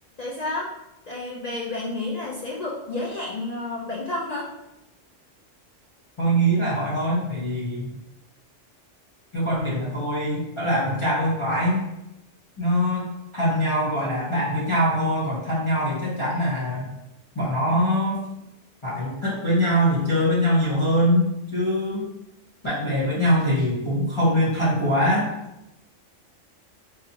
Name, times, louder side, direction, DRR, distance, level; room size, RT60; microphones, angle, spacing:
voice 1, 0.2-0.7 1.1-4.5, left 2 dB, 65° left, -3 dB, 0.4 m, -30 dB
voice 2, 6.2-7.9 9.3-11.8 12.6-13.1 13.3-16.9 17.3-18.3 18.8-22.1 22.6-25.3, equal, 30° left, -8 dB, 0.7 m, -23 dB
4.0 x 2.7 x 2.7 m, 0.91 s
omnidirectional pair, 1.3 m